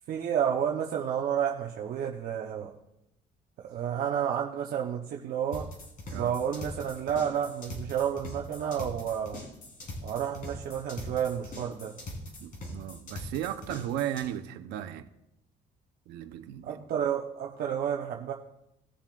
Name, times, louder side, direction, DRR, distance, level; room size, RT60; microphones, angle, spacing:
voice 1, 0.1-2.7 3.6-5.7 6.1-9.4 10.0-12.0 16.6-18.3, right 8 dB, 60° right, 1.0 m, -30 dB
sound 1, 5.5-14.3, left 1 dB, 50° left, 3.8 m, -41 dB
voice 2, 12.4-15.1 16.1-16.8, right 11 dB, 90° right, 0.9 m, -35 dB
19.0 x 7.2 x 2.5 m
cardioid pair, 110°, 17 cm